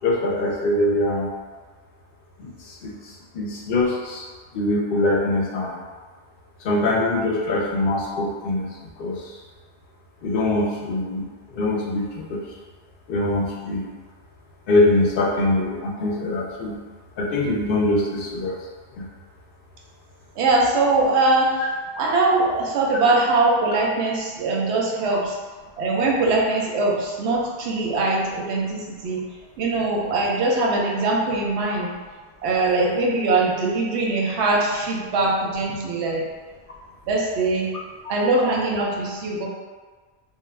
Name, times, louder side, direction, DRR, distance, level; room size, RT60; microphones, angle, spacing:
voice 1, 0.0-1.3 2.4-4.2 4.5-5.8 6.6-8.7 9.0-9.3 10.2-11.2 11.5-12.4 13.1-13.9 14.7-16.8 17.2-18.6 18.9-19.1, left 2 dB, 65° left, -2 dB, 0.7 m, -23 dB
voice 2, 20.4-21.6 22.0-25.4 25.8-29.2 29.6-31.9 32.4-36.3 37.1-37.7 38.1-39.5, right 2 dB, 85° right, -2 dB, 0.8 m, -22 dB
2.4 x 2.0 x 3.1 m, 1.4 s
omnidirectional pair, 1.1 m